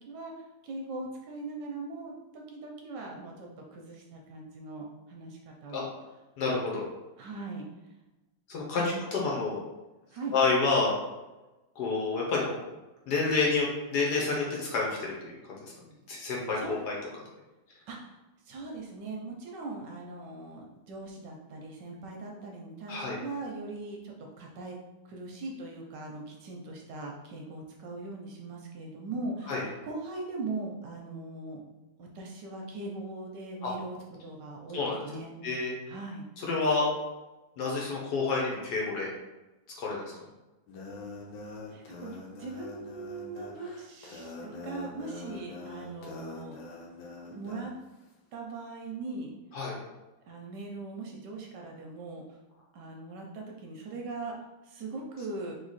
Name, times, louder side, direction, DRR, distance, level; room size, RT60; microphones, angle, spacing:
voice 1, 0.6-5.9 7.2-7.6 8.7-9.0 10.1-10.3 16.6-16.8 17.9-18.2 18.4-24.8 25.1-31.6 32.0-34.0 34.2-35.3 35.9-36.2 41.7-46.6 47.2-47.7 48.3-49.3 50.3-52.2 52.7-54.3 54.6-55.5, right 3 dB, 70° right, 0 dB, 1.2 m, -40 dB
voice 2, 6.4-6.8 8.5-9.6 10.3-10.9 11.8-12.5 13.1-15.6 16.1-17.0 22.9-23.2 29.5-29.6 33.6-33.7 34.7-35.0 35.4-35.7 36.4-36.9 37.6-39.1 39.8-40.2 49.5-49.8, left 3 dB, 60° left, -3 dB, 1.3 m, -29 dB
sound 1, 40.7-47.7, left 3 dB, 80° left, 1.6 m, -44 dB
3.7 x 2.9 x 4.0 m, 1.1 s
omnidirectional pair, 2.2 m